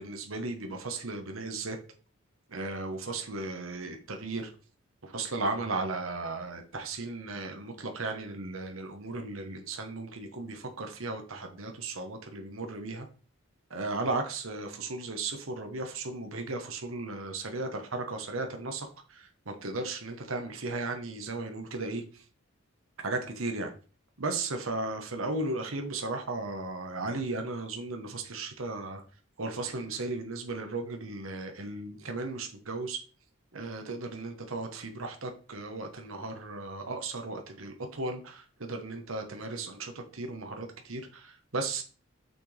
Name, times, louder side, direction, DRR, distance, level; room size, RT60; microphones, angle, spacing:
voice 1, 0.0-1.8 2.5-4.5 5.0-13.1 13.7-22.0 23.0-23.7 24.2-29.0 29.4-33.0 33.5-41.8, right 3 dB, 80° right, 1.3 m, -35 dB
6.7 x 6.2 x 3.4 m
head